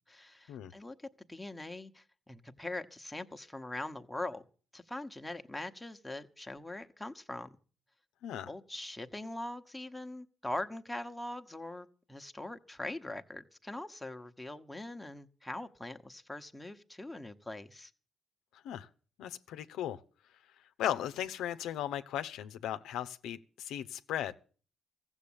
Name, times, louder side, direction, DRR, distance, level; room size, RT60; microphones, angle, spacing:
voice 1, 0.1-4.4 4.7-7.6 8.5-17.9, left 1 dB, 5° left, 1.1 m, -42 dB
voice 2, 19.2-20.0 20.8-24.4, left 11 dB, 85° left, 0.6 m, -37 dB
15.0 x 7.3 x 8.6 m
cardioid pair, 90°, 0 cm